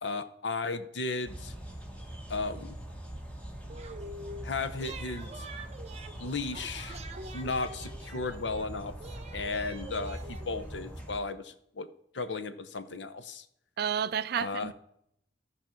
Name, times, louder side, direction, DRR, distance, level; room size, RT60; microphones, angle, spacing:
voice 1, 0.0-1.5 2.3-2.8 4.4-5.4 6.2-7.0 7.3-8.9 9.3-11.9 12.1-13.4 14.4-14.7, left 3 dB, 80° left, 0.8 m, -35 dB
sound 1, 1.2-11.2, right 1 dB, 5° left, 1.4 m, -43 dB
sound 2, 3.7-4.5 4.8-8.7 9.0-11.3, right 2 dB, 40° right, 0.8 m, -46 dB
voice 2, 13.8-14.7, right 8 dB, 60° right, 0.4 m, -30 dB
14.5 x 5.3 x 4.4 m
head